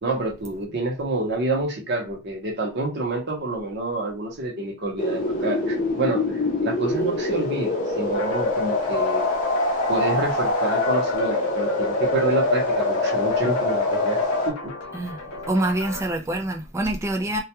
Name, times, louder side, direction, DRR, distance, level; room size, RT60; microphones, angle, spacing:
voice 1, 0.0-9.3 9.9-14.2 14.5-14.7, right 2 dB, 50° right, 0.7 m, -28 dB
sound 1, 5.0-14.5, left 2 dB, 35° left, 0.6 m, -24 dB
sound 2, 8.1-16.0, left 3 dB, 85° left, 0.5 m, -35 dB
voice 2, 15.5-17.4, right 1 dB, 15° right, 0.3 m, -25 dB
2.3 x 2.2 x 2.8 m
head